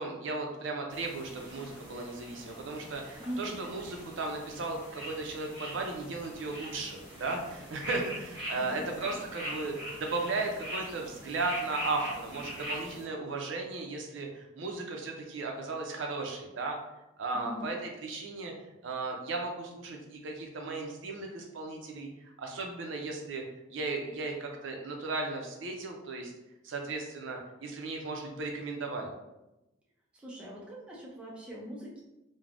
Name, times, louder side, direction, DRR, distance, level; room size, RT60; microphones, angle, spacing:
voice 1, 0.0-9.7 10.0-16.8 17.2-17.8 18.0-18.5 18.8-22.1 22.4-23.4 23.7-26.3 26.6-29.1, right 3 dB, 70° right, 2 dB, 0.4 m, -36 dB
sound 1, 0.9-13.0, equal, 25° right, 0.8 m, -42 dB
voice 2, 3.2-3.6 8.5-9.2 17.3-17.8 30.1-32.0, equal, 5° right, -5 dB, 0.4 m, -41 dB
3.2 x 2.1 x 2.4 m, 0.96 s
head